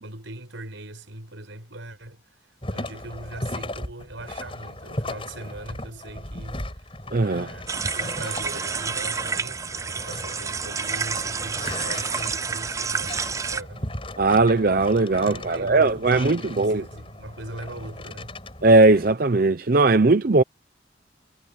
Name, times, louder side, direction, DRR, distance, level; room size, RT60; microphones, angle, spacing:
voice 1, 0.0-14.2 15.2-18.4, right 1 dB, 85° right, 6.2 m, -40 dB
sound 1, 2.6-19.1, left 1 dB, 30° left, 7.8 m, -37 dB
voice 2, 7.1-7.5 14.2-16.8 18.6-20.4, right 3 dB, 50° right, 0.6 m, -18 dB
sound 2, 7.7-13.6, right 5 dB, 15° right, 0.3 m, -29 dB
head